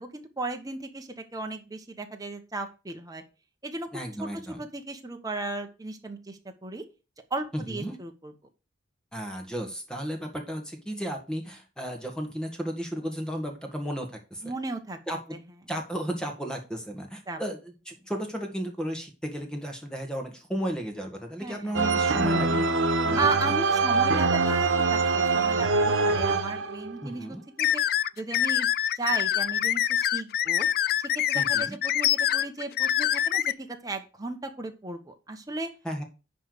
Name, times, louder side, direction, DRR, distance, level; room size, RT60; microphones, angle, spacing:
voice 1, 0.0-3.2 3.6-3.9 4.2-4.3 4.6-6.8 7.3-8.3 14.4-15.0 15.3-15.4 17.3-17.4 21.4-21.7 23.2-25.7 26.0-27.8 28.2-28.7 28.9-30.7 31.0-35.7, right 3 dB, 20° right, 4 dB, 1.1 m, -35 dB
voice 2, 3.9-4.6 7.5-8.0 9.1-14.5 15.1-15.4 15.7-23.3 27.0-27.4 31.3-31.8 35.8-36.0, equal, 5° left, 3 dB, 1.6 m, -34 dB
sound 1, 21.7-27.0, right 3 dB, 90° right, 0.9 m, -24 dB
sound 2, 27.6-33.5, left 11 dB, 50° left, 0.3 m, -25 dB
10.0 x 3.4 x 6.6 m, 0.32 s
head